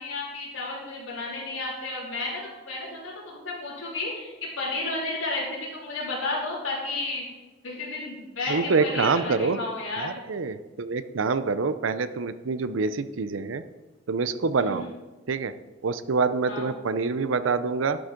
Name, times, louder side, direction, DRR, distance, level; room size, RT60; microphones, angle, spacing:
voice 1, 0.0-7.2 7.6-10.1 14.6-14.9 16.5-16.7, left 2 dB, 85° left, -6 dB, 3.4 m, -32 dB
voice 2, 8.5-9.6 10.0-13.6 14.1-14.9 15.3-15.5 15.8-18.0, right 4 dB, 80° right, 12 dB, 0.6 m, -26 dB
12.0 x 6.3 x 5.1 m, 1.2 s
head